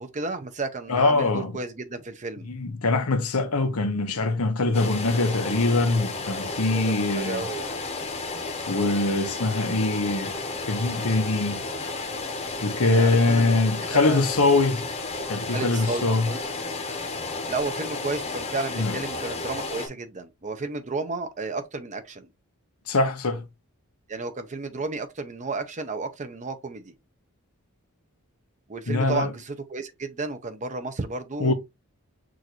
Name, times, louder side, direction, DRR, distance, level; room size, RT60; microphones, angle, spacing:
voice 1, 0.0-2.5 6.7-7.7 12.8-13.6 13.9-14.2 15.5-16.4 17.5-22.3 24.1-26.9 28.7-31.5, right 3 dB, 35° right, 0.7 m, -32 dB
voice 2, 0.9-1.5 2.5-7.5 8.7-10.3 10.7-11.6 12.6-14.9 15.3-16.3 18.7-18.9 22.9-23.4 28.9-29.3 31.4-31.5, left 3 dB, 85° left, 0.9 m, -23 dB
sound 1, 4.7-19.9, left 3 dB, 30° left, 0.9 m, -32 dB
6.2 x 2.6 x 3.0 m
head